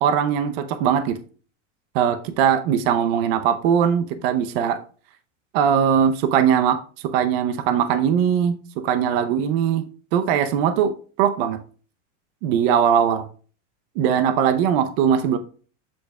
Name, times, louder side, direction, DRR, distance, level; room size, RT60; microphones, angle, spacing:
voice 1, 0.0-1.2 1.9-4.8 5.5-9.9 10.1-11.6 12.4-13.3 14.0-15.4, right 8 dB, 50° right, 0.8 m, -20 dB
8.0 x 6.6 x 2.3 m
supercardioid pair, 155°, 37 cm